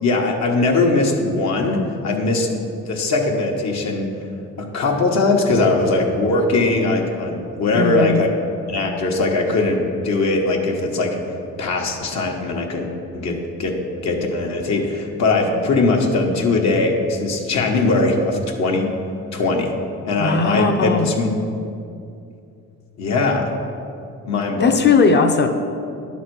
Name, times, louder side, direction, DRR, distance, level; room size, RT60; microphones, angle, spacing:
voice 1, 0.0-2.5 2.9-4.1 4.6-8.3 8.7-11.1 11.6-13.7 14.0-18.9 19.3-19.7 20.0-21.3 23.0-23.5 24.2-24.8, left 3 dB, 65° left, 1 dB, 1.3 m, -20 dB
voice 2, 7.7-8.2 20.2-21.1 24.6-25.5, left 4 dB, 35° left, 6 dB, 0.8 m, -17 dB
10.5 x 4.2 x 6.2 m, 2.5 s
cardioid pair, 90°, 30 cm